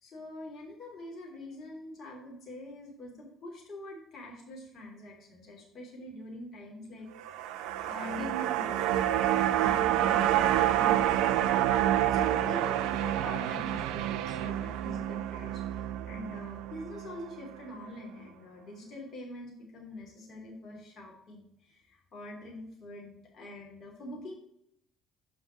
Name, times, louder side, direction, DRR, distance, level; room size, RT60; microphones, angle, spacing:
voice 1, 0.0-7.4 7.8-11.1 12.0-24.3, left 1 dB, 45° left, -1 dB, 3.0 m, -44 dB
sound 1, 7.2-17.6 17.9-18.0, right 12 dB, 60° right, 0.3 m, -28 dB
6.1 x 5.6 x 5.7 m, 0.73 s
figure-of-eight pair, 50°, 0 cm